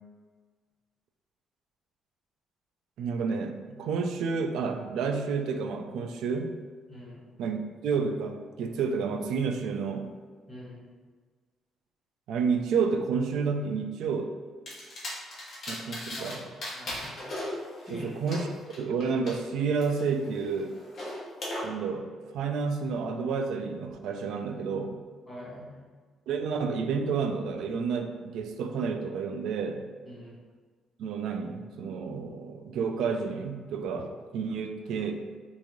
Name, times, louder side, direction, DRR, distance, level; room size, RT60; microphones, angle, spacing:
voice 1, 3.0-6.6 7.4-10.1 12.3-14.3 15.7-16.4 17.9-18.5 18.8-20.8 21.6-22.1 22.3-25.0 26.3-29.9 31.0-35.2, right 5 dB, 70° right, 6 dB, 0.3 m, -30 dB
voice 2, 6.9-7.2 10.5-10.8 16.2-16.4 16.7-17.1 17.8-18.2 25.3-25.8 30.1-30.3, left 1 dB, ahead, -9 dB, 1.0 m, -43 dB
sound 1, 14.7-16.3 16.6-19.3 19.8-21.6, left 1 dB, 35° left, 0.9 m, -38 dB
3.0 x 2.6 x 3.6 m, 1.5 s
cardioid pair, 180°, 0 cm